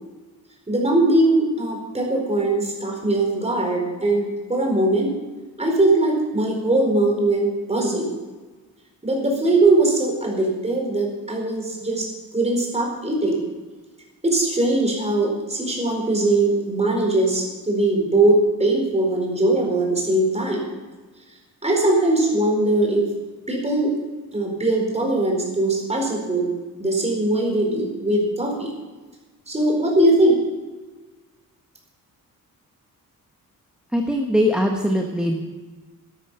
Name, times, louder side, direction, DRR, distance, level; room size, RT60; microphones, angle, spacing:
voice 1, 0.7-5.1 5.6-8.1 9.0-12.1 12.3-13.4 14.2-20.6 21.6-23.1 23.5-23.9 24.3-28.7 29.5-30.4, right 2 dB, 20° right, 0 dB, 4.5 m, -21 dB
voice 2, 33.9-35.4, equal, 5° right, 2 dB, 1.1 m, -21 dB
12.5 x 12.0 x 5.6 m, 1.3 s
wide cardioid pair, 135°, 36 cm